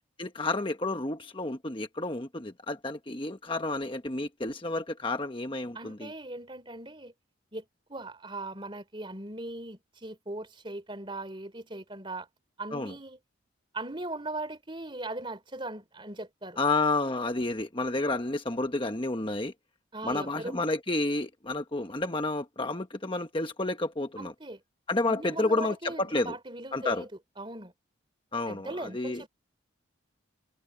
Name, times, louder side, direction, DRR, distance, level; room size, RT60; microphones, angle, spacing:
voice 1, 0.2-6.1 12.7-12.9 16.6-19.5 20.0-24.3 24.9-26.3 26.7-27.0 28.3-29.2, left 2 dB, 25° left, 1.2 m, -30 dB
voice 2, 5.7-7.1 7.5-12.3 12.6-13.2 13.7-16.6 19.9-20.6 24.2-24.6 25.1-27.1 27.4-27.7 28.5-29.3, right 2 dB, 25° right, 3.3 m, -39 dB
head